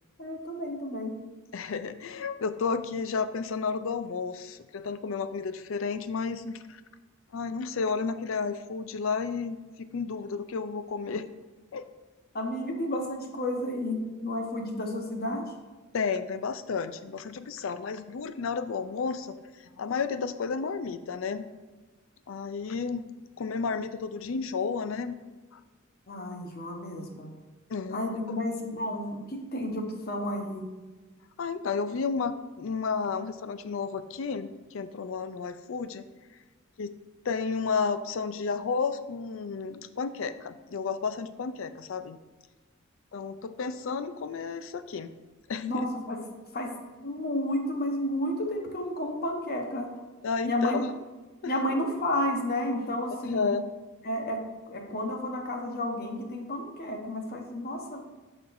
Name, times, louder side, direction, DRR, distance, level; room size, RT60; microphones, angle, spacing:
voice 1, 0.2-1.2 12.3-15.5 26.1-27.3 27.9-30.6 45.6-46.2 46.5-49.9 50.4-50.8 51.4-53.5 54.0-58.0, left 1 dB, 50° left, 2 dB, 1.1 m, -31 dB
voice 2, 1.5-6.8 7.3-11.3 11.7-11.8 15.9-19.4 19.8-21.5 22.3-23.1 23.4-25.2 25.5-25.6 27.7-28.4 31.4-36.0 36.8-36.9 37.2-42.2 43.1-45.1 45.5-45.9 50.2-50.9 51.4-51.5 53.2-53.7, left 5 dB, 70° left, 11 dB, 0.4 m, -32 dB
12.5 x 4.3 x 2.6 m, 1.3 s
head